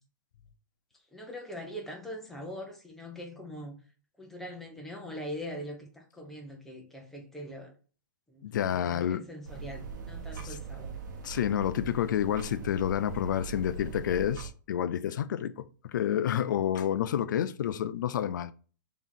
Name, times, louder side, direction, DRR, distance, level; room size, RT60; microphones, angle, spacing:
voice 1, 1.1-3.8 4.2-7.7 8.3-11.0, equal, 5° left, 0.9 m, -42 dB
voice 2, 8.4-9.2 10.4-10.6 11.2-18.5, left 10 dB, 75° left, 0.4 m, -29 dB
sound 1, 9.4-14.5, right 5 dB, 65° right, 0.9 m, -41 dB
3.6 x 3.0 x 4.0 m
hypercardioid pair, 145°, 10 cm